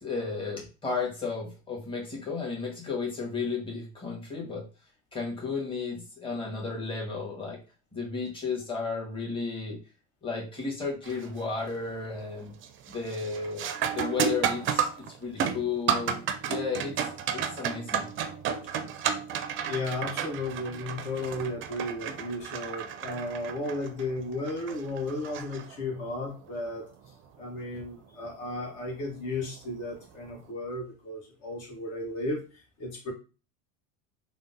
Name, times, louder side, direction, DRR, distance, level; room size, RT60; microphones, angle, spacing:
voice 1, 0.0-4.6 5.1-7.6 7.9-9.8 10.2-12.5 12.9-14.9 15.2-16.2 16.5-16.9 17.3-18.1, left 4 dB, 15° left, -3 dB, 1.3 m, -33 dB
sound 1, 11.0-11.4 11.8-12.3 12.6-26.1 28.6-28.7 29.6-29.8, right 8 dB, 35° right, 0.4 m, -32 dB
voice 2, 19.7-26.9 27.4-33.1, left 2 dB, 55° left, 0 dB, 1.2 m, -34 dB
3.6 x 2.1 x 2.6 m, 0.33 s
supercardioid pair, 100°, 37 cm